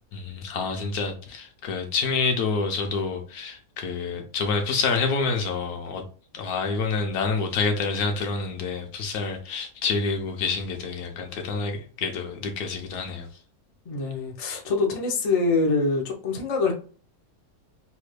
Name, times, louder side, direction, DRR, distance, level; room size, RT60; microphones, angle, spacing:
voice 1, 0.1-6.0 6.3-13.3, left 4 dB, 70° left, 1.1 m, -28 dB
voice 2, 13.9-16.7, left 3 dB, 50° left, 0.4 m, -24 dB
3.2 x 2.2 x 3.2 m
omnidirectional pair, 1.7 m